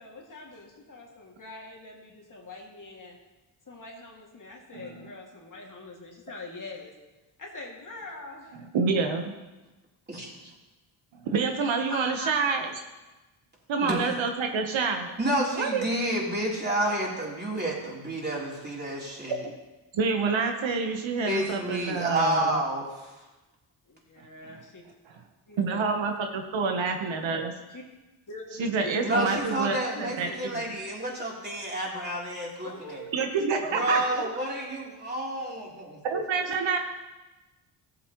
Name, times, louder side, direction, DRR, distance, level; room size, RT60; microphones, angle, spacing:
voice 1, 0.0-3.2 3.7-6.9 7.4-8.6 23.9-24.9 25.5-25.8 27.7-27.8 28.3-29.5 29.9-30.6 32.6-33.3, left 2 dB, 40° left, -1 dB, 2.3 m, -43 dB
voice 2, 4.7-5.1 8.5-9.3 11.1-12.7 13.7-15.1 15.5-15.8 19.9-22.6 25.1-25.2 25.6-27.5 28.6-30.8 33.1-34.3 36.0-36.8, right 4 dB, 65° right, 4 dB, 1.2 m, -28 dB
voice 3, 11.9-12.3 13.8-14.0 15.2-19.4 21.3-23.2 29.0-33.0 33.7-36.0, right 1 dB, 20° right, -4 dB, 3.4 m, -30 dB
14.0 x 8.2 x 3.1 m, 1.1 s
cardioid pair, 65°, 49 cm